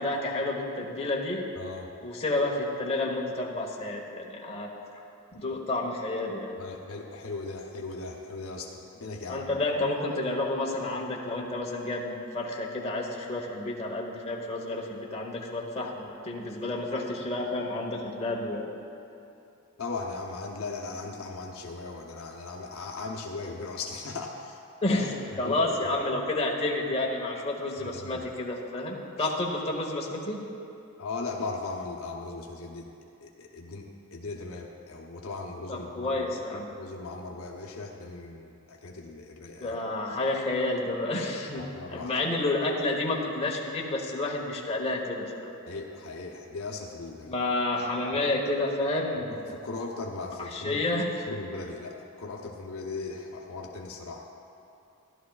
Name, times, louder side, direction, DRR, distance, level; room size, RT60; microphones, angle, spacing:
voice 1, 0.0-1.4 2.0-4.7 5.3-6.5 9.3-18.9 24.8-30.4 35.7-36.7 39.6-45.5 47.3-49.5 50.4-51.1, left 2 dB, 30° left, -2 dB, 1.1 m, -30 dB
voice 2, 1.6-1.9 6.6-9.5 19.8-24.6 24.9-25.0 25.4-25.6 25.8-26.0 27.8-28.2 29.2-29.3 31.0-32.9 33.2-36.2 36.5-39.8 41.6-42.1 45.7-47.3 49.6-50.8 51.3-54.2, left 3 dB, 70° left, 0 dB, 0.9 m, -38 dB
14.5 x 11.5 x 2.3 m, 2.7 s
head